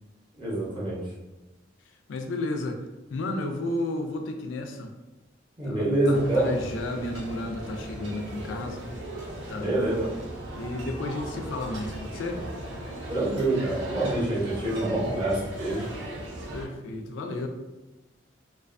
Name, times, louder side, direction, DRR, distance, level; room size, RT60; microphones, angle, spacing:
voice 1, 0.4-1.0 5.6-6.5 9.5-10.1 13.1-15.8, right 2 dB, 25° right, -6 dB, 0.6 m, -26 dB
voice 2, 2.1-2.8 3.1-4.9 5.6-8.9 9.5-9.7 10.5-12.4 16.5-17.5, left 2 dB, 80° left, 5 dB, 0.4 m, -32 dB
sound 1, 6.1-16.7, right 1 dB, 80° right, 0.6 m, -38 dB
2.4 x 2.2 x 2.4 m, 1.1 s
head